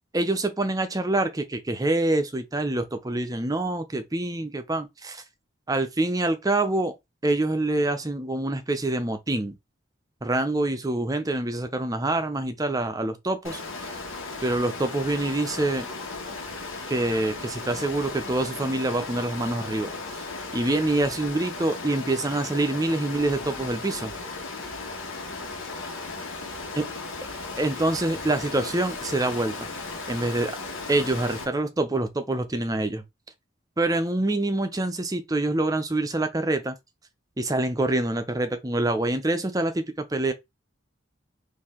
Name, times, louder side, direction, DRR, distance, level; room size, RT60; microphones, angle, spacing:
voice 1, 0.1-5.2 5.7-6.9 7.2-9.6 10.2-14.0 14.4-15.9 16.9-19.9 20.5-24.1 26.8-26.9 27.6-29.7 30.1-30.6 30.9-33.0 33.8-36.8 37.4-40.3, right 2 dB, 20° right, 0.6 m, -26 dB
Water, 13.4-31.4, left 3 dB, 80° left, 1.3 m, -36 dB
4.5 x 2.7 x 3.7 m
head